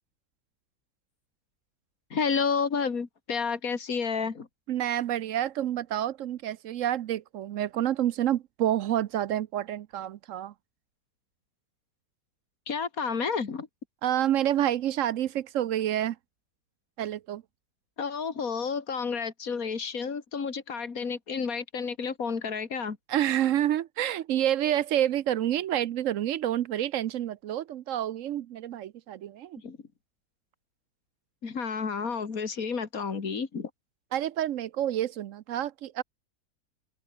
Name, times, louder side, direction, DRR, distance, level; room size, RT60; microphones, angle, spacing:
voice 1, 2.1-4.5 12.7-13.7 18.0-23.0 29.6-29.8 31.4-33.7, left 5 dB, 55° left, 2.8 m, -30 dB
voice 2, 4.7-10.5 14.0-16.2 17.0-17.4 23.1-29.6 34.1-36.0, right 11 dB, 65° right, 0.8 m, -28 dB
open air
omnidirectional pair, 1.9 m